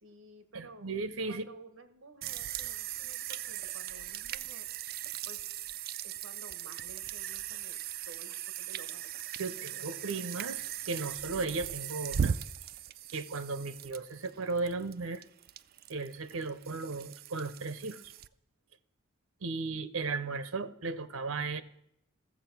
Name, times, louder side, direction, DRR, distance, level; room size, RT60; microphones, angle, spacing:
voice 1, 0.0-0.9 1.3-4.7 5.3-5.4 6.0-7.8 8.1-9.1 9.4-10.1, right 3 dB, 65° right, 10 dB, 1.1 m, -53 dB
voice 2, 0.5-1.5 9.4-12.3 13.1-15.2 15.9-18.0 19.4-21.6, right 3 dB, 80° right, 14 dB, 0.8 m, -36 dB
sound 1, 2.2-18.3, right 9 dB, 45° right, 0.3 m, -39 dB
13.5 x 7.3 x 5.9 m, 0.78 s
head